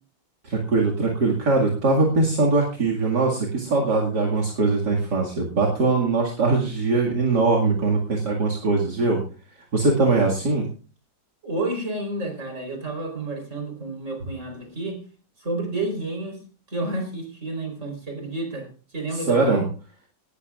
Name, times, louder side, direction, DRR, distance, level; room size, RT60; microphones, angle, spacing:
voice 1, 0.4-9.2 9.6-10.6 19.1-19.6, right 3 dB, 60° right, -2 dB, 2.7 m, -21 dB
voice 2, 11.4-15.0 15.4-16.4 16.7-19.6, right 2 dB, 40° right, 3 dB, 4.5 m, -30 dB
18.5 x 13.5 x 2.5 m, 0.37 s
omnidirectional pair, 2.0 m